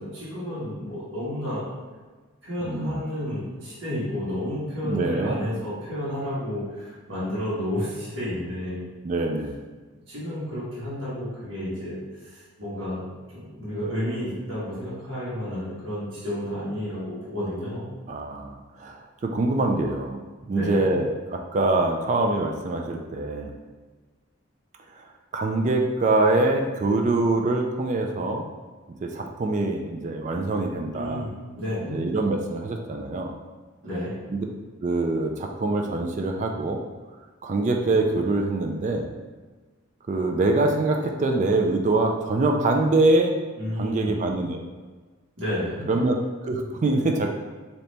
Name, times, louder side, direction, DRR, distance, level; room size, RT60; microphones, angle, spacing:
voice 1, 0.0-1.7 2.4-8.9 10.1-13.0 13.3-17.9 20.5-20.8 30.9-32.0 33.8-34.1 43.6-44.2 45.4-45.9, left 1 dB, 70° right, -10 dB, 1.4 m, -31 dB
voice 2, 2.7-3.0 4.8-5.4 9.0-9.6 18.1-20.2 20.5-23.5 24.9-25.1 25.3-28.5 29.0-31.2 31.9-33.3 34.3-34.5 34.8-36.8 37.4-39.1 40.1-43.4 43.8-44.6 45.9-46.2 46.4-47.3, right 2 dB, 35° right, 3 dB, 0.3 m, -24 dB
4.0 x 2.8 x 3.3 m, 1.4 s
head